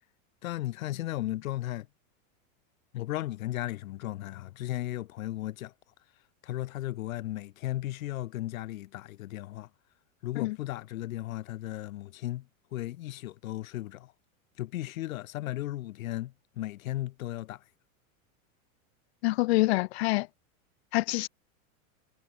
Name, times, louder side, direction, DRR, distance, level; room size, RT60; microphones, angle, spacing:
voice 1, 0.4-1.9 2.9-5.7 6.4-9.7 10.2-12.5 12.7-14.1 14.6-17.6, left 15 dB, 75° left, 5.4 m, -35 dB
voice 2, 19.2-20.3 20.9-21.3, left 21 dB, 50° left, 0.8 m, -26 dB
supercardioid pair, 175°, 41 cm